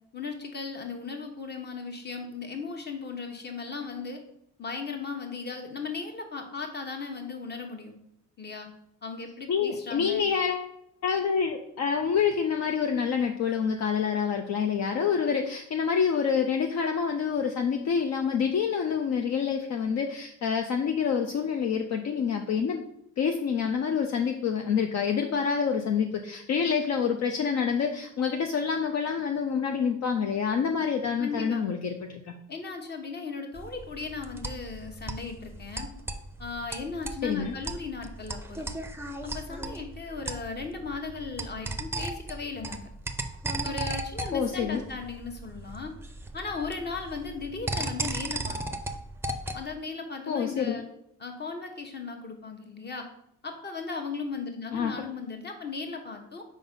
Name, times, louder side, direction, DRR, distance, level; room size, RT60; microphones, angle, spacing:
voice 1, 0.1-4.2 4.6-8.0 8.4-8.7 9.0-10.3 31.2-31.6 32.5-35.9 36.4-38.6 39.2-42.9 43.6-45.9 46.3-48.6 49.5-50.9 51.2-53.1 53.4-56.4, left 4 dB, 35° left, 4 dB, 1.2 m, -37 dB
voice 2, 9.5-10.7 11.0-22.8 23.2-32.4 37.2-37.5 44.3-44.8 50.3-50.8 54.7-54.9, left 6 dB, 60° left, 4 dB, 0.6 m, -27 dB
sound 1, 33.6-49.7, right 2 dB, 10° right, 0.5 m, -36 dB
5.0 x 3.8 x 5.4 m, 0.76 s
cardioid pair, 90°, 30 cm